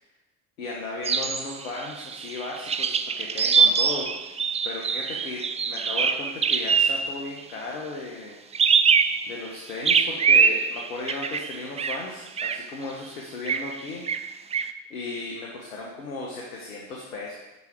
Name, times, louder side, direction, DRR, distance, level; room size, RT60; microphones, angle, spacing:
voice 1, 0.6-4.3 4.6-8.4 9.3-14.0 14.9-17.3, left 3 dB, 75° left, -2 dB, 1.5 m, -36 dB
sound 1, 1.0-7.3 8.5-9.5 9.8-12.0 12.4-12.6 13.5-13.8 14.0-14.7, right 6 dB, 15° right, 0.4 m, -23 dB
7.6 x 5.5 x 7.6 m, 1.0 s
figure-of-eight pair, 55°, 42 cm